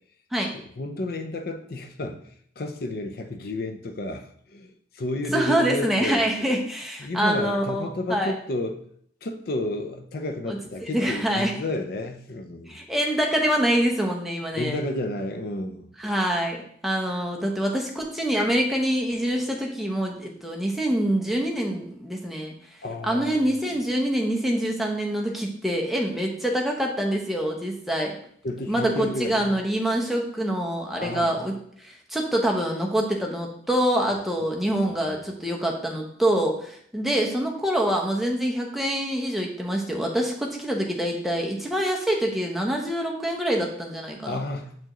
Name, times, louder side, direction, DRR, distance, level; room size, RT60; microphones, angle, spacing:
voice 1, 0.5-6.2 7.0-8.8 9.2-12.8 14.5-15.9 22.8-23.6 28.4-29.6 31.0-31.4 34.4-35.2 44.2-44.8, left 1 dB, 55° left, 6 dB, 0.5 m, -32 dB
voice 2, 5.3-8.3 10.5-11.5 12.7-14.8 16.0-16.6 16.8-22.5 23.0-28.2 28.7-31.5 31.8-44.4, right 1 dB, ahead, -1 dB, 0.7 m, -25 dB
7.5 x 4.6 x 3.0 m, 0.64 s
head